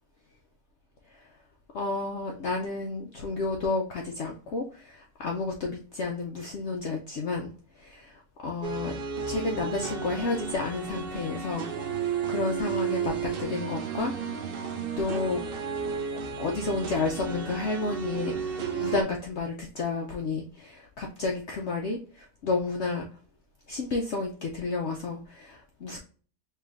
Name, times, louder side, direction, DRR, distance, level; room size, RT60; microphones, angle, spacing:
voice 1, 1.7-8.9 9.3-14.1 14.4-14.6 15.0-15.4 16.4-23.1 23.7-26.0, left 3 dB, 70° left, 1 dB, 0.6 m, -31 dB
sound 1, 8.6-19.0, right 6 dB, 85° right, 0.5 m, -33 dB
4.7 x 3.2 x 2.5 m, 0.41 s
omnidirectional pair, 1.7 m